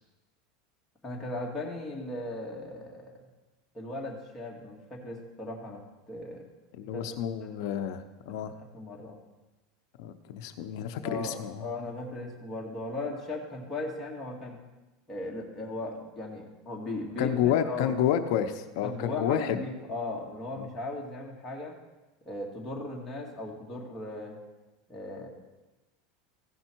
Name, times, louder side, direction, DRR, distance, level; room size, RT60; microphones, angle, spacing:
voice 1, 1.0-3.2 3.7-5.8 6.1-6.5 6.9-8.0 8.3-9.2 11.0-14.6 15.1-18.0 18.8-21.7 22.2-24.4 24.9-25.3, left 2 dB, 15° left, -3 dB, 1.9 m, -37 dB
voice 2, 6.8-8.5 10.0-11.6 17.2-19.6 20.6-20.7, left 10 dB, 65° left, 8 dB, 0.6 m, -30 dB
15.0 x 5.5 x 4.5 m, 1.1 s
supercardioid pair, 145°, 2 cm